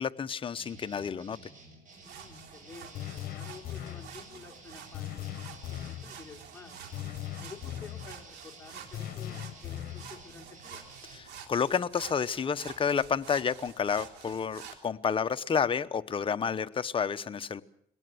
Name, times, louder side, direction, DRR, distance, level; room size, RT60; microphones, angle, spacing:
voice 1, 0.0-1.4 11.1-17.6, left 6 dB, 30° left, 10 dB, 0.9 m, -30 dB
sound 1, 0.5-11.2, right 3 dB, 50° right, 7.5 m, -53 dB
sound 2, 1.9-14.8, right 7 dB, 80° right, 3.4 m, -49 dB
voice 2, 2.0-5.3 5.7-6.8 7.4-10.8, left 5 dB, 15° left, 1 dB, 3.4 m, -51 dB
sound 3, 2.9-4.1 4.9-6.1 6.9-8.1 8.9-10.1, left 12 dB, 60° left, 1.2 m, -39 dB
22.0 x 18.0 x 7.9 m, 0.68 s
cardioid pair, 110°, 17 cm